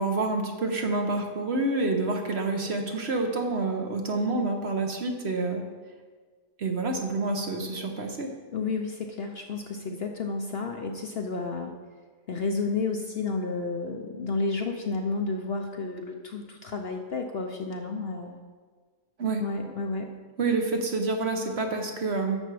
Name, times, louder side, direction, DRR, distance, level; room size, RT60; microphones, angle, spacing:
voice 1, 0.0-5.6 6.6-8.3 19.2-19.4 20.4-22.4, right 3 dB, 50° right, 3 dB, 1.0 m, -28 dB
voice 2, 8.5-11.7 12.3-18.4 19.4-20.1, left 3 dB, 55° left, 3 dB, 0.8 m, -31 dB
11.0 x 7.0 x 4.7 m, 1.5 s
omnidirectional pair, 1.6 m